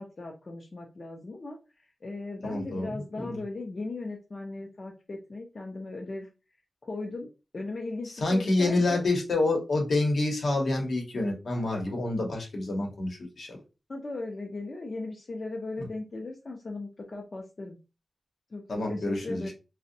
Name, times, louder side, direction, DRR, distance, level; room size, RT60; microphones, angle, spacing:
voice 1, 0.0-6.3 6.8-7.3 7.5-9.0 13.9-17.8 18.5-19.5, left 2 dB, 45° left, 1 dB, 0.4 m, -38 dB
voice 2, 2.4-3.4 8.2-13.6 18.7-19.5, left 2 dB, 70° left, 1 dB, 0.8 m, -28 dB
2.6 x 2.0 x 2.6 m, 0.29 s
wide cardioid pair, 95°, 0 cm